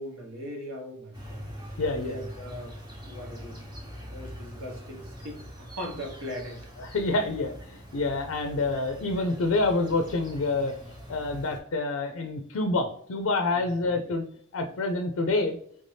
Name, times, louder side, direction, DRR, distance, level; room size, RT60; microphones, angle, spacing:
voice 1, 0.0-1.4 2.0-2.8 3.0-3.6 3.9-6.6 13.5-13.7, equal, 70° right, 0 dB, 1.1 m, -39 dB
sound 1, 1.1-11.6, equal, 20° right, 0.8 m, -43 dB
voice 2, 1.8-2.2 6.8-10.7 11.1-14.3 14.5-15.6, left 2 dB, 65° left, 5 dB, 0.4 m, -27 dB
3.4 x 2.7 x 3.3 m, 0.64 s
head